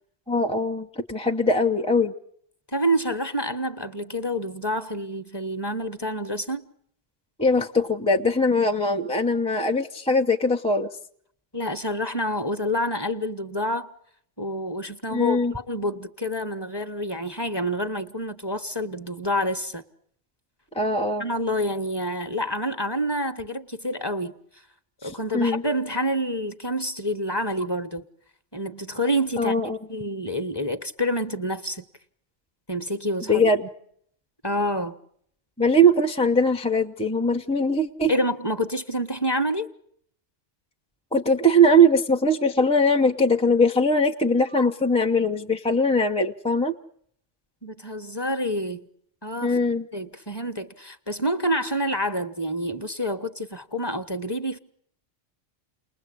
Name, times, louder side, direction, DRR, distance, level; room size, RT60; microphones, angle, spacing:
voice 1, 0.3-2.1 7.4-10.9 15.1-15.5 20.7-21.2 25.0-25.6 29.4-29.8 33.3-33.6 35.6-38.1 41.1-46.7 49.4-49.9, equal, 5° left, 0.9 m, -21 dB
voice 2, 2.7-6.6 11.5-13.9 14.4-19.8 21.2-24.3 25.0-28.0 28.5-29.6 29.9-31.9 32.7-33.4 34.4-34.9 38.1-39.7 47.6-48.9 49.2-49.6 49.9-54.6, equal, 20° left, 1.2 m, -28 dB
29.5 x 20.5 x 8.6 m
omnidirectional pair, 1.3 m